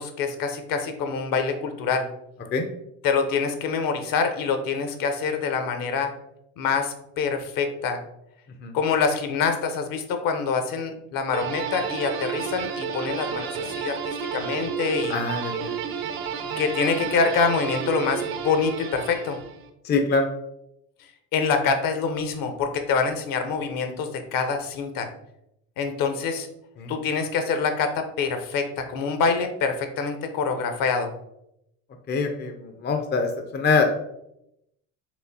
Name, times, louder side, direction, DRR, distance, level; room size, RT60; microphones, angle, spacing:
voice 1, 0.0-2.1 3.0-6.1 6.6-8.0 8.7-15.2 16.6-19.4 21.3-25.1 25.8-26.5 26.9-31.1, left 5 dB, 55° left, 7 dB, 0.8 m, -25 dB
sound 1, 11.3-19.7, right 7 dB, 60° right, 0.7 m, -31 dB
voice 2, 15.1-15.8 19.8-20.3 26.8-26.9 32.1-33.9, left 4 dB, 25° left, 4 dB, 0.5 m, -24 dB
4.8 x 3.2 x 2.7 m, 0.80 s
supercardioid pair, 95°, 40 cm